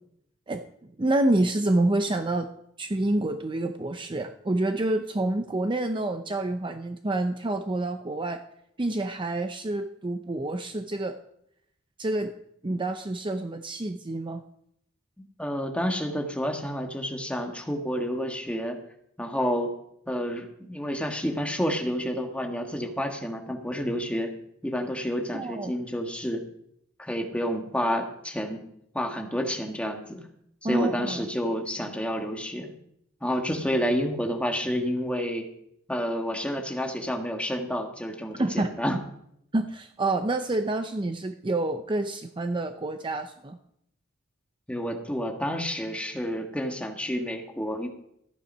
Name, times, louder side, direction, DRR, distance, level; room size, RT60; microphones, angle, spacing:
voice 1, 1.0-2.5 2.8-8.4 8.8-11.2 12.0-12.3 12.6-14.4 25.3-25.7 30.6-31.2 38.4-38.7 39.5-43.6, right 2 dB, 25° right, 7 dB, 0.6 m, -28 dB
voice 2, 15.4-18.8 19.2-19.7 20.1-24.3 24.6-26.4 27.0-28.6 28.9-30.2 30.6-32.7 33.2-35.5 35.9-39.0 44.7-47.9, equal, 5° left, 2 dB, 1.6 m, -29 dB
14.5 x 9.6 x 5.5 m, 0.75 s
head